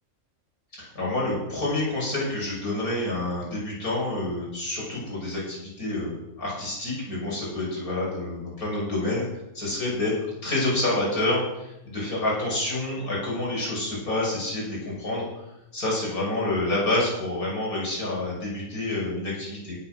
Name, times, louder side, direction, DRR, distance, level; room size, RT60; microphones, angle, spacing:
voice 1, 0.8-9.2 9.5-10.1 10.4-15.2 15.7-19.8, left 2 dB, 80° left, -5 dB, 6.9 m, -28 dB
17.5 x 7.8 x 6.3 m, 0.89 s
omnidirectional pair, 1.5 m